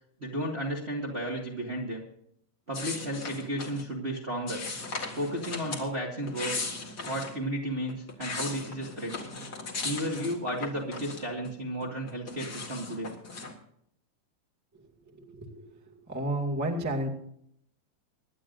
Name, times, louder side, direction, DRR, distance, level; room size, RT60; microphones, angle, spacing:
voice 1, 0.2-2.0 2.7-4.6 5.1-6.5 7.0-9.2 9.8-13.1, right 1 dB, 25° right, -2 dB, 1.6 m, -33 dB
sound 1, 2.7-3.8 4.5-5.9 6.2-7.4 7.9-11.5 11.8-13.5, left 3 dB, 35° left, 2.1 m, -37 dB
voice 2, 15.2-15.6 16.1-17.1, right 1 dB, 5° right, -1 dB, 1.6 m, -31 dB
26.5 x 11.0 x 2.6 m, 0.72 s
omnidirectional pair, 3.7 m